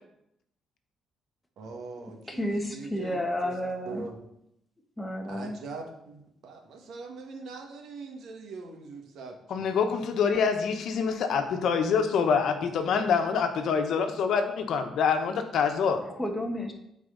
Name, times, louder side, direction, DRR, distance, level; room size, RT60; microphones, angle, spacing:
voice 1, 1.6-3.5 3.9-4.2 5.3-9.7, right 4 dB, 75° right, 2 dB, 1.9 m, -42 dB
voice 2, 2.3-4.1 5.0-5.6 16.2-16.7, equal, 10° left, 2 dB, 1.4 m, -31 dB
voice 3, 9.5-16.0, left 6 dB, 70° left, 6 dB, 1.2 m, -26 dB
13.0 x 4.7 x 4.0 m, 0.78 s
cardioid pair, 90°, 0 cm